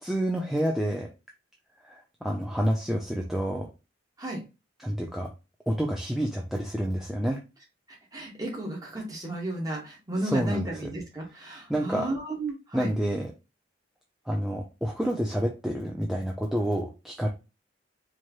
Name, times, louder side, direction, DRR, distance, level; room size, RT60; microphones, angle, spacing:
voice 1, 0.0-1.1 1.8-3.7 4.8-5.3 5.7-7.4 10.2-10.7 11.7-12.1 12.7-13.3 14.3-17.3, equal, ahead, 0 dB, 0.4 m, -28 dB
voice 2, 7.9-12.9, right 1 dB, 20° right, -2 dB, 1.4 m, -33 dB
4.6 x 2.9 x 2.9 m, 0.29 s
head